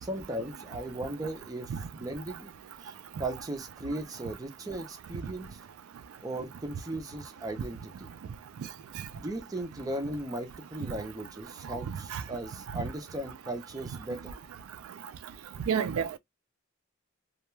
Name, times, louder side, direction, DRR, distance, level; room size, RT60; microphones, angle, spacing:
voice 1, 0.0-2.5 2.8-5.5 6.2-8.1 9.1-14.3, right 1 dB, 15° right, 0.5 m, -37 dB
voice 2, 15.7-16.2, right 7 dB, 85° right, 0.3 m, -29 dB
2.3 x 2.2 x 3.0 m
head